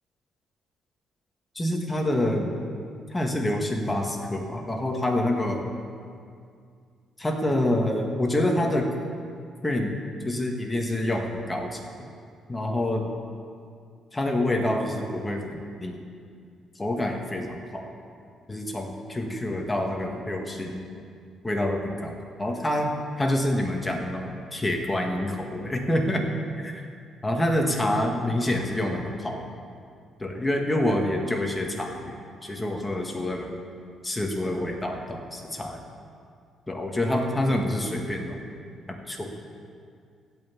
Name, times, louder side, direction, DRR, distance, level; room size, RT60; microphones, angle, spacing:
voice 1, 1.5-2.5 3.1-5.7 7.2-8.9 9.6-10.0 10.2-11.8 12.5-13.1 14.1-15.9 16.8-17.9 18.5-20.9 21.4-22.1 22.4-22.9 23.2-26.2 26.6-26.9 27.2-29.4 30.2-33.5 34.0-35.8 36.7-38.4 38.9-39.3, left 1 dB, 15° left, 2 dB, 1.6 m, -27 dB
15.5 x 5.7 x 8.2 m, 2.3 s
cardioid pair, 120°, 0 cm